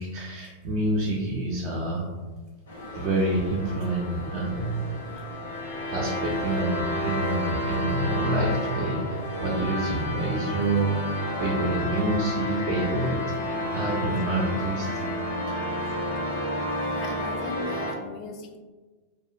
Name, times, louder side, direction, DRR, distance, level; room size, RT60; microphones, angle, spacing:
voice 1, 0.0-2.1 2.9-4.8 5.9-14.9 15.5-15.6, right 2 dB, 45° right, -4 dB, 0.4 m, -27 dB
sound 1, 2.7-17.9, left 1 dB, 70° left, 0.8 m, -31 dB
voice 2, 16.8-18.6, left 4 dB, 40° left, 4 dB, 0.3 m, -38 dB
2.5 x 2.1 x 2.4 m, 1.3 s
figure-of-eight pair, 90°, 0 cm